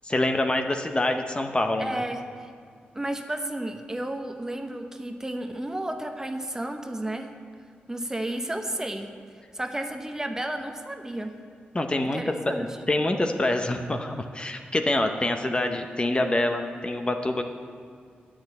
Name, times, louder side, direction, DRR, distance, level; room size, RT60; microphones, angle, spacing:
voice 1, 0.0-2.0 11.7-12.2 12.6-17.4, left 1 dB, 30° left, 5 dB, 0.7 m, -26 dB
voice 2, 1.8-2.5 2.9-7.3 7.9-9.1 9.5-11.4 12.0-12.7, right 1 dB, 15° right, 5 dB, 0.9 m, -32 dB
8.6 x 6.3 x 8.1 m, 2.2 s
cardioid pair, 60°, 4 cm